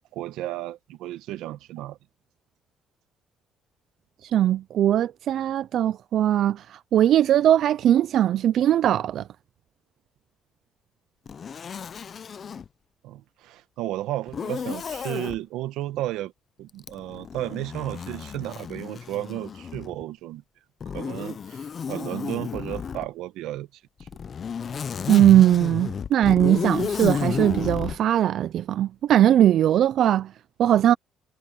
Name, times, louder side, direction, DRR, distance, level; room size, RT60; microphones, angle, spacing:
voice 1, 0.1-2.0 13.0-16.3 16.6-20.4 20.9-23.7 24.0-24.1, right 14 dB, 90° right, 1.3 m, -33 dB
voice 2, 4.2-9.3 25.1-30.3 30.6-30.9, right 11 dB, 50° right, 0.3 m, -20 dB
Zipper (clothing), 11.3-12.7 14.3-15.4 16.8-20.0 20.8-23.1 24.0-28.0, left 6 dB, 30° left, 0.4 m, -32 dB
cardioid pair, 175°, 0 cm